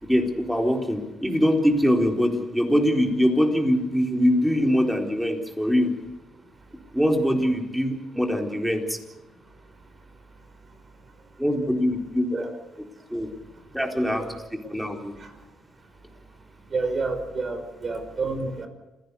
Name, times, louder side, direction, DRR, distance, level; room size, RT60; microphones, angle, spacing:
voice 1, 0.0-5.9 6.9-9.0 11.4-12.5 13.1-13.3 13.7-14.3 14.7-15.2, equal, ahead, 2 dB, 4.2 m, -23 dB
voice 2, 16.7-18.7, right 3 dB, 40° right, 7 dB, 5.4 m, -29 dB
28.0 x 17.0 x 7.1 m, 1.0 s
cardioid pair, 90°, 0 cm